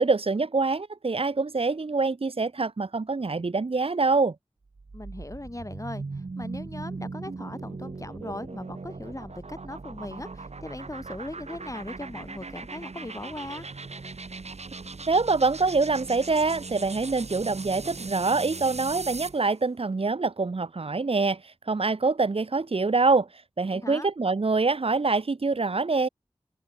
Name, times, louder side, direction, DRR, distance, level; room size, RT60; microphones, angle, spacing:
voice 1, 0.0-4.3 15.1-23.3 23.6-26.1, right 3 dB, 60° right, 1.2 m, -25 dB
sound 1, 4.7-19.4, right 3 dB, 85° right, 5.3 m, -39 dB
voice 2, 4.9-13.7 23.7-24.1, left 1 dB, 30° left, 7.0 m, -39 dB
open air
wide cardioid pair, 65°, 11 cm